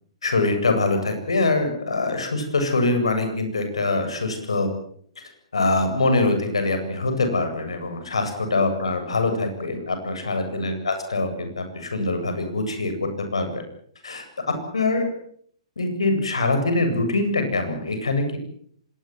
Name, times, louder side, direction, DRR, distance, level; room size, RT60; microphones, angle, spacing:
voice 1, 0.2-4.7 5.5-12.9 13.3-13.6 14.0-14.2 14.7-15.1 15.8-18.4, left 2 dB, 70° left, 7 dB, 7.8 m, -23 dB
26.0 x 20.0 x 7.8 m, 0.62 s
figure-of-eight pair, 115°, 3 cm